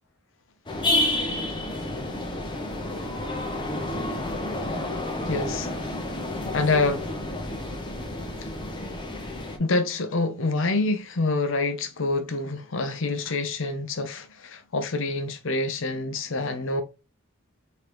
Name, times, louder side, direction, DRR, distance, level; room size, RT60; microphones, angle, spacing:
sound 1, 0.7-9.6, left 1 dB, 20° left, 0.7 m, -30 dB
voice 1, 5.3-5.7 6.5-7.1 8.4-8.5 9.6-16.8, left 3 dB, 60° left, 0.6 m, -26 dB
3.8 x 3.2 x 3.0 m
head